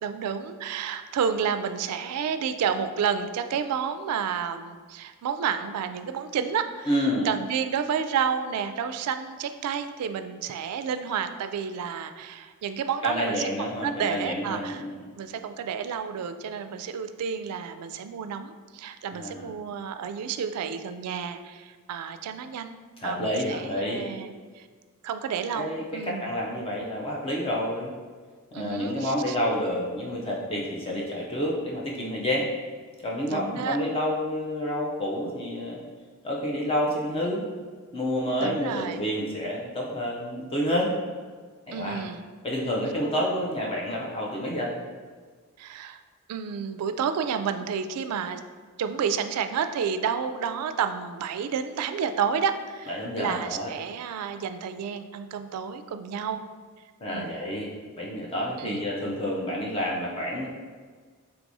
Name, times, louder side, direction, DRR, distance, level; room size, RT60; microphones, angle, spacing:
voice 1, 0.0-14.9 15.2-22.8 23.0-24.7 25.0-26.4 28.5-29.4 33.3-33.8 38.4-39.0 41.7-42.2 45.6-46.0 46.3-48.4 48.8-56.4 57.1-57.3 58.6-58.8, right 7 dB, 85° right, 9 dB, 0.3 m, -30 dB
voice 2, 6.9-7.3 13.0-15.0 19.1-19.5 23.0-24.1 25.5-27.9 28.5-32.5 33.0-35.8 36.2-37.4 37.9-40.9 41.7-42.0 42.4-44.7 52.9-53.7 57.0-57.7 58.0-60.5, equal, 25° left, -3 dB, 0.5 m, -29 dB
4.6 x 3.4 x 2.6 m, 1.6 s
head